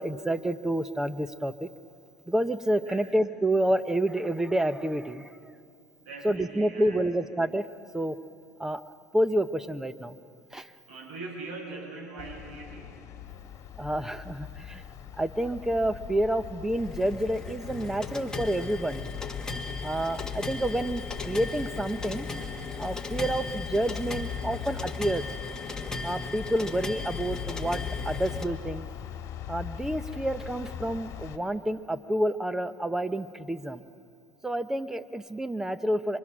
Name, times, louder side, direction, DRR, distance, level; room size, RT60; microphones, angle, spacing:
voice 1, 0.0-1.7 2.3-5.4 6.2-7.7 7.9-8.2 8.6-8.8 9.1-10.2 10.5-10.7 13.8-14.8 15.2-19.1 19.8-22.3 22.8-25.2 26.0-28.9 29.5-33.8 34.4-36.2, right 1 dB, 5° right, 13 dB, 0.8 m, -29 dB
voice 2, 6.0-7.1 10.9-13.0, right 3 dB, 85° right, -2 dB, 7.8 m, -41 dB
sound 1, 12.2-31.4, left 10 dB, 50° left, 1.7 m, -40 dB
sound 2, 16.7-28.4, left 3 dB, 10° left, 1.7 m, -37 dB
26.0 x 24.5 x 6.2 m, 2.5 s
supercardioid pair, 120°, 7 cm